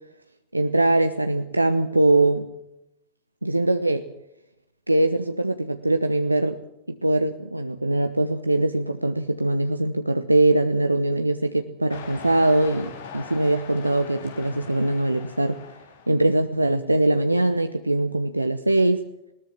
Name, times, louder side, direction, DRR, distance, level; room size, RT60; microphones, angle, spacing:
voice 1, 0.5-2.5 3.4-4.0 4.9-6.6 6.9-15.6 16.1-19.1, right 2 dB, 85° right, 7 dB, 1.0 m, -22 dB
sound 1, 11.9-16.3, left 5 dB, 60° left, 4.3 m, -41 dB
20.5 x 19.5 x 7.6 m, 0.81 s
figure-of-eight pair, 90°, 0 cm